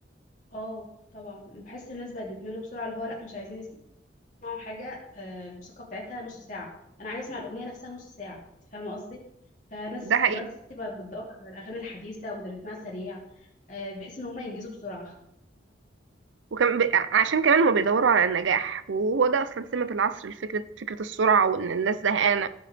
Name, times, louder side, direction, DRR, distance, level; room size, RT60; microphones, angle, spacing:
voice 1, 0.5-0.9 1.1-3.7 4.4-6.7 7.0-8.5 8.7-9.2 9.7-10.4 10.7-13.2 13.7-15.1, left 2 dB, 40° left, -4 dB, 2.9 m, -38 dB
voice 2, 10.0-10.4 16.5-22.5, right 6 dB, 85° right, 14 dB, 0.6 m, -23 dB
15.5 x 5.6 x 3.5 m, 0.78 s
head